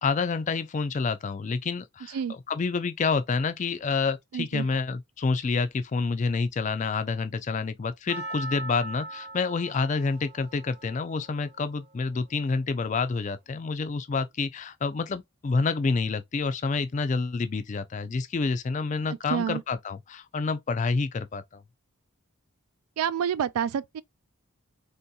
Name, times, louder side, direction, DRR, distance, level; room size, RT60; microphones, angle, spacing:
voice 1, 0.0-21.6, left 4 dB, 35° left, 0.3 m, -28 dB
voice 2, 4.3-4.7 19.3-19.6 23.0-24.0, right 8 dB, 90° right, 0.3 m, -28 dB
Percussion, 8.1-12.4 13.1-13.2, right 2 dB, 50° right, 0.7 m, -41 dB
3.6 x 2.7 x 2.2 m
head